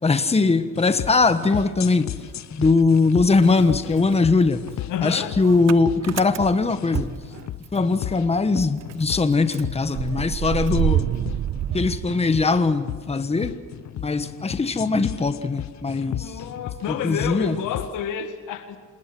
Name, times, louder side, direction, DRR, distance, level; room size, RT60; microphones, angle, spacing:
voice 1, 0.0-2.1 2.6-4.6 5.0-7.2 7.7-11.1 11.7-13.6 14.0-16.4 16.9-17.6, left 3 dB, 20° left, 1.3 m, -21 dB
sound 1, 0.8-17.9, left 12 dB, 65° left, 0.9 m, -35 dB
Motor vehicle (road) / Engine starting, 1.8-3.0 3.3-8.0 8.3-8.4 8.6-12.7, right 11 dB, 60° right, 0.7 m, -29 dB
voice 2, 4.9-5.3 16.1-18.8, left 8 dB, 85° left, 1.8 m, -29 dB
27.5 x 20.0 x 6.2 m
cardioid pair, 90°, 30 cm